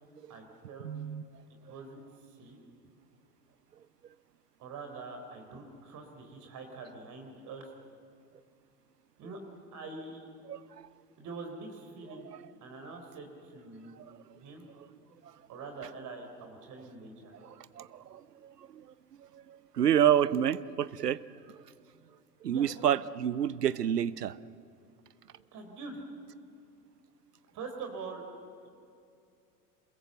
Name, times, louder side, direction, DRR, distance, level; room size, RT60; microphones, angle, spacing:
voice 1, 0.3-0.9 1.6-2.6 4.6-7.7 9.2-9.4 9.7-10.3 11.2-12.3 12.6-14.0 14.4-14.7 15.5-17.3 22.5-22.7 25.5-26.0 27.5-28.2, right 4 dB, 40° right, 4 dB, 3.8 m, -44 dB
voice 2, 0.8-1.2 10.5-10.6 14.0-14.1 17.4-18.8 19.3-21.2 21.5-21.6 22.4-24.4, right 10 dB, 75° right, 19 dB, 0.8 m, -29 dB
27.5 x 22.0 x 7.8 m, 2.5 s
figure-of-eight pair, 80°, 48 cm